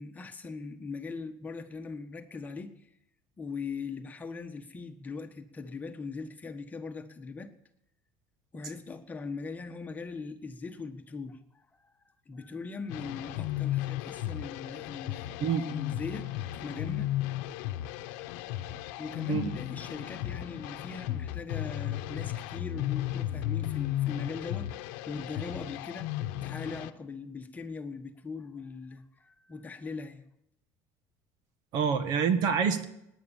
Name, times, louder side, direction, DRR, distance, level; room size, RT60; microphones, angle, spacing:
voice 1, 0.0-2.9 3.4-7.5 8.5-11.9 12.3-15.3 15.6-16.3 16.6-17.1 19.0-26.1 26.4-30.3, left 4 dB, 20° left, 6 dB, 1.4 m, -40 dB
sound 1, 12.9-26.9, left 14 dB, 85° left, 0.9 m, -35 dB
voice 2, 31.7-32.8, right 6 dB, 60° right, 10 dB, 1.7 m, -26 dB
18.0 x 10.0 x 7.2 m, 0.82 s
cardioid pair, 120°, 8 cm